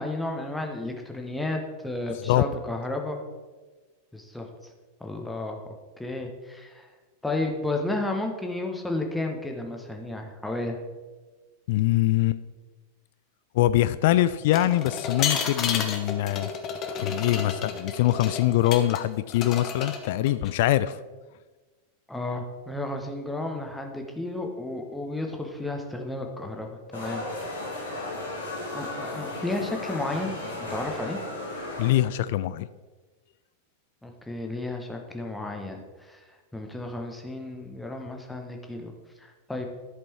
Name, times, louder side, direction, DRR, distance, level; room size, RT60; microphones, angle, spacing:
voice 1, 0.0-3.2 4.1-4.5 5.0-5.6 6.0-6.9 7.2-10.8 22.1-27.2 28.7-30.3 30.6-31.2 34.0-35.8 36.1-36.2 36.5-38.9 39.2-39.7, left 2 dB, 5° left, 2 dB, 1.2 m, -32 dB
voice 2, 11.7-12.4 13.5-16.5 17.0-21.0 31.8-32.7, left 14 dB, 50° left, 15 dB, 0.3 m, -23 dB
sound 1, 14.5-19.0 19.3-20.5, left 6 dB, 35° left, 1.0 m, -31 dB
sound 2, 26.9-31.9, left 2 dB, 70° left, 1.9 m, -35 dB
11.5 x 5.3 x 4.5 m, 1.3 s
figure-of-eight pair, 90°, 0 cm